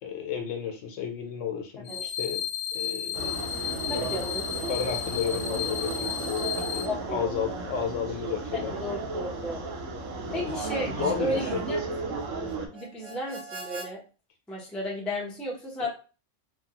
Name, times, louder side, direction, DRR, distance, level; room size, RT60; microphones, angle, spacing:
voice 1, 0.0-2.4 2.7-3.5 3.8-4.2 4.7-8.7 10.3-10.6 10.8-11.6 15.8-15.9, left 7 dB, 80° left, 3 dB, 0.9 m, -33 dB
sound 1, 1.9-6.8, left 9 dB, 55° left, 0.8 m, -33 dB
sound 2, 3.1-12.7, right 3 dB, 90° right, 1.0 m, -34 dB
voice 2, 3.9-4.5 6.9-7.3 8.5-9.7 10.3-10.9 11.2-11.8 12.7-14.0 14.5-15.9, equal, ahead, -3 dB, 0.5 m, -33 dB
Harmonica, 4.4-13.9, right 2 dB, 65° right, 0.8 m, -49 dB
3.0 x 2.1 x 2.8 m, 0.35 s
omnidirectional pair, 1.3 m